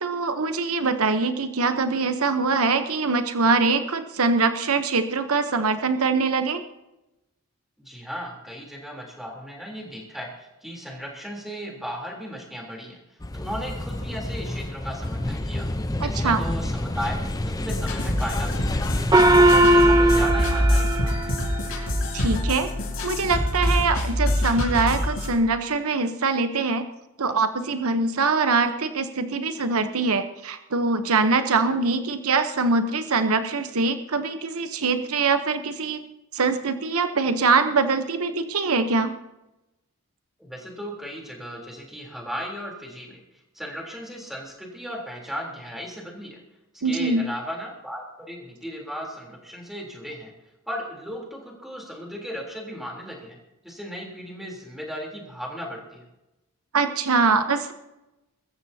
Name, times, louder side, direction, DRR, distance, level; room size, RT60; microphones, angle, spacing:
voice 1, 0.0-6.6 16.0-16.4 22.1-22.7 23.0-26.8 27.2-36.0 36.3-39.1 46.8-47.3 56.7-57.7, right 4 dB, 80° right, 8 dB, 1.0 m, -23 dB
voice 2, 7.8-15.7 16.0-18.8 19.2-21.4 40.4-43.2 43.5-46.4 46.8-50.3 50.7-53.4 53.6-56.0, equal, ahead, -1 dB, 3.5 m, -36 dB
sound 1, 13.2-20.3, left 1 dB, 15° left, 0.7 m, -29 dB
sound 2, 17.6-25.4, left 1 dB, 60° left, 5.1 m, -25 dB
Gong, 19.1-22.0, right 1 dB, 15° right, 0.8 m, -19 dB
23.0 x 14.0 x 2.8 m, 0.96 s
head